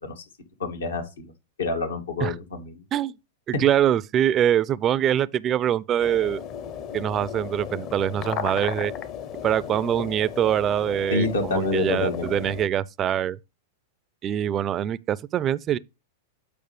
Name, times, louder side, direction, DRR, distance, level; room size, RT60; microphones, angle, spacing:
voice 1, 0.6-1.3 1.6-2.8 3.5-3.6 11.1-12.3, left 3 dB, 85° left, 2.1 m, -27 dB
voice 2, 3.5-6.4 6.9-8.9 9.4-13.4 14.2-15.8, right 10 dB, 30° right, 0.4 m, -24 dB
sound 1, 6.0-12.7, left 8 dB, 40° left, 0.8 m, -35 dB
8.8 x 5.0 x 3.2 m
hypercardioid pair, 110°, 0 cm